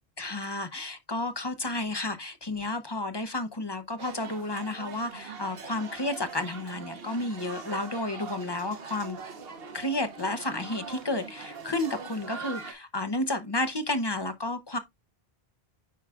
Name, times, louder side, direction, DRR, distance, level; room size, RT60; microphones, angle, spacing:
voice 1, 0.2-9.2 9.7-14.8, left 2 dB, 25° left, 0.7 m, -31 dB
sound 1, 4.0-12.7, right 5 dB, 65° right, 1.2 m, -42 dB
9.3 x 4.7 x 2.3 m
omnidirectional pair, 1.1 m